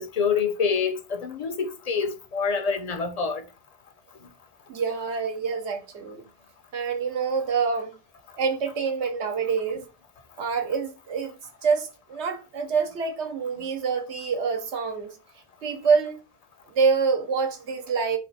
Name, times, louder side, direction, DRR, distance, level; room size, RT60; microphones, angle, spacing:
voice 1, 0.0-3.4, left 5 dB, 50° left, 0.4 m, -26 dB
voice 2, 4.7-6.2 6.7-8.0 8.4-9.9 10.4-15.1 15.6-16.2 16.7-18.2, right 5 dB, 80° right, 1.1 m, -26 dB
3.4 x 2.5 x 4.0 m
omnidirectional pair, 1.1 m